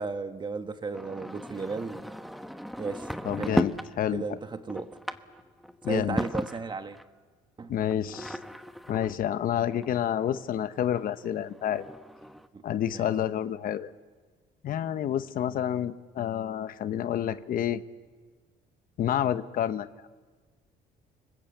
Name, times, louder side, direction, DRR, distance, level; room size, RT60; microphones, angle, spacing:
voice 1, 0.0-2.1 2.8-3.1 3.4-3.5 4.1-5.0 5.9-7.0 7.6-7.7 12.5-12.6 12.9-13.1, right 4 dB, 25° right, 8 dB, 1.5 m, -35 dB
sound 1, 0.9-3.9 4.4-7.0 7.8-10.4 11.0-11.1 11.3-11.4 11.6-12.5, equal, ahead, 1.0 m, -35 dB
voice 2, 3.2-4.4 5.8-6.2 7.7-8.4 8.9-11.9 12.6-13.9 14.6-17.8 19.0-19.9, left 10 dB, 55° left, 12 dB, 1.0 m, -29 dB
29.5 x 20.0 x 8.0 m, 1.4 s
cardioid pair, 110°, 17 cm